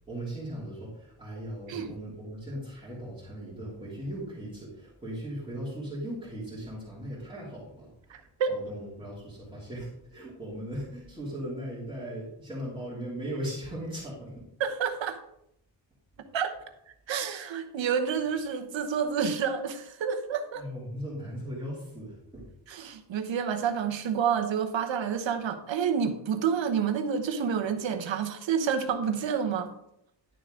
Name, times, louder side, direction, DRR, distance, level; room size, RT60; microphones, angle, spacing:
voice 1, 0.1-14.3 20.5-22.5, equal, 10° right, -9 dB, 2.8 m, -38 dB
voice 2, 8.1-8.6 14.6-15.2 16.3-16.5 17.1-20.6 22.7-29.7, right 7 dB, 75° right, 7 dB, 1.1 m, -29 dB
11.0 x 6.8 x 3.8 m, 0.76 s
wide cardioid pair, 170°, 46 cm